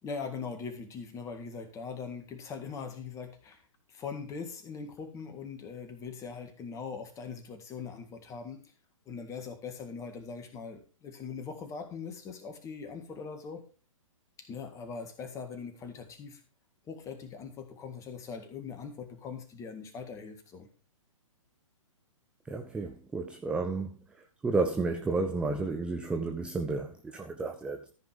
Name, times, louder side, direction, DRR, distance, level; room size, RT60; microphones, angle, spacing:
voice 1, 0.0-3.6 3.9-8.6 9.1-13.6 14.4-16.4 16.9-20.7, left 5 dB, 15° left, 1.9 m, -41 dB
voice 2, 22.5-27.8, right 3 dB, 5° right, 0.5 m, -32 dB
14.0 x 5.3 x 5.1 m
figure-of-eight pair, 125°, 17 cm